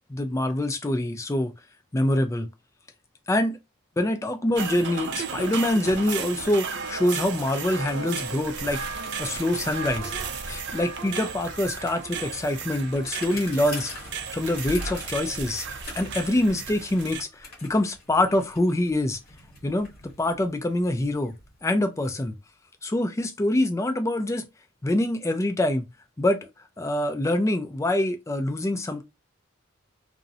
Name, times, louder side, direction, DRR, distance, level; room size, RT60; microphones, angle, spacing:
voice 1, 0.1-1.5 1.9-2.5 3.3-3.6 4.0-8.9 9.2-10.1 10.5-13.9 14.3-15.7 16.0-19.2 19.6-19.9 20.2-21.4 21.6-22.4 22.8-24.5 24.8-25.8 26.2-26.4 26.8-29.0, left 1 dB, 15° left, 0.3 m, -25 dB
sound 1, 4.5-17.2, right 5 dB, 55° right, 0.4 m, -34 dB
Bicycle, 8.9-9.0 9.3-22.2, left 2 dB, 50° left, 1.0 m, -45 dB
2.5 x 2.0 x 2.6 m
head